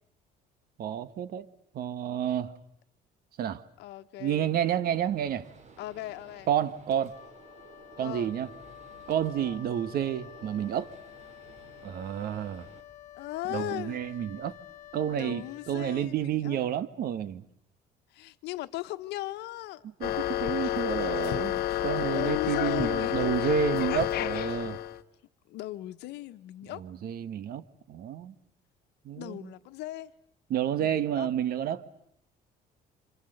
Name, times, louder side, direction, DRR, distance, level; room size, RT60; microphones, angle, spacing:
voice 1, 0.8-1.5 1.7-2.5 3.4-3.6 4.2-5.5 6.5-7.1 8.0-8.5 9.1-10.9 11.8-12.7 13.5-14.6 14.9-17.4 20.0-24.8 26.8-28.3 29.0-29.4 30.5-31.8, right 10 dB, 65° right, 1.5 m, -30 dB
voice 2, 3.8-4.6 5.8-6.5 8.0-8.3 9.4-9.6 13.1-14.0 15.1-16.6 18.1-19.9 22.1-23.3 25.5-26.8 29.1-30.1 30.8-31.3, left 16 dB, 85° left, 1.2 m, -38 dB
Gunshot gunfire, 4.9-12.8, right 5 dB, 45° right, 3.6 m, -54 dB
Wind instrument woodwind instrument, 7.0-16.5, left 11 dB, 45° left, 1.8 m, -50 dB
sound 1, 20.0-25.0, left 12 dB, 65° left, 1.2 m, -29 dB
27.5 x 27.0 x 8.0 m
cardioid pair, 110°, 17 cm